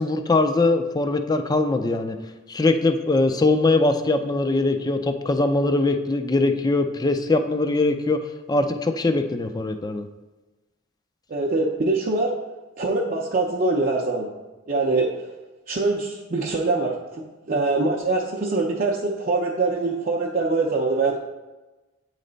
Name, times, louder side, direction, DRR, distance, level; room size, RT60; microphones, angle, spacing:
voice 1, 0.0-2.2 2.5-8.2 8.5-10.1, left 2 dB, 20° left, 8 dB, 0.4 m, -21 dB
voice 2, 11.3-12.3 12.8-14.3 14.7-15.1 15.7-21.2, right 3 dB, 40° right, -3 dB, 0.5 m, -23 dB
8.4 x 3.2 x 3.9 m, 1.1 s
head